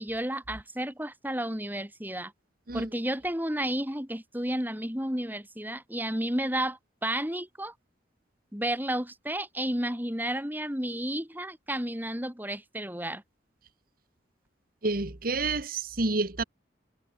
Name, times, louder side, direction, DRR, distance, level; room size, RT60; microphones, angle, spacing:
voice 1, 0.0-2.3 2.7-7.7 8.5-13.2, right 1 dB, 10° right, 6.2 m, -32 dB
voice 2, 14.8-16.4, right 3 dB, 50° right, 1.6 m, -29 dB
head